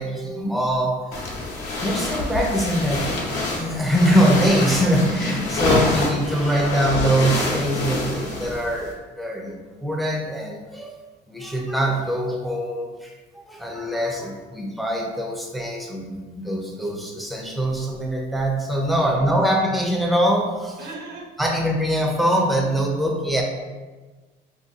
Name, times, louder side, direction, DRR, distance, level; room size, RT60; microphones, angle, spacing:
voice 1, 0.0-1.3 1.8-10.9 11.3-13.1 13.5-20.8 21.4-23.4, equal, ahead, 0 dB, 0.5 m, -23 dB
sound 1, 1.1-8.9, left 2 dB, 80° left, 0.8 m, -26 dB
voice 2, 5.6-6.5 19.0-19.2 20.8-21.3, right 3 dB, 65° right, -1 dB, 0.9 m, -40 dB
2.8 x 2.4 x 3.5 m, 1.3 s
cardioid pair, 110°, 17 cm